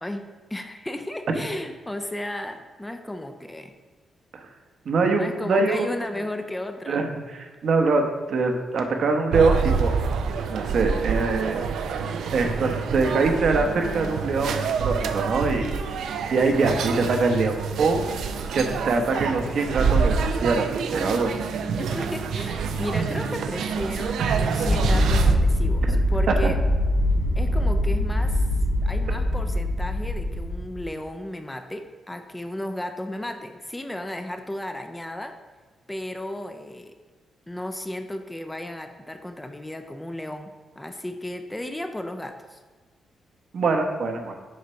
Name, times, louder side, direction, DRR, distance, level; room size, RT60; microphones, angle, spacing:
voice 1, 0.0-3.7 5.0-7.1 21.8-26.6 27.4-28.5 28.8-35.4 35.9-36.9 37.5-42.6, left 1 dB, 10° left, 7 dB, 0.5 m, -34 dB
voice 2, 4.9-5.9 6.9-7.1 7.4-9.9 10.5-11.6 12.3-15.7 16.3-18.0 18.5-21.4 25.9-26.0 26.3-26.5 43.5-44.3, right 3 dB, 60° right, 4 dB, 0.9 m, -23 dB
sound 1, 9.3-25.3, right 5 dB, 85° right, 0.5 m, -27 dB
sound 2, 24.6-30.9, left 1 dB, 55° left, 2.1 m, -23 dB
6.5 x 4.0 x 5.6 m, 1.4 s
cardioid pair, 110°, 0 cm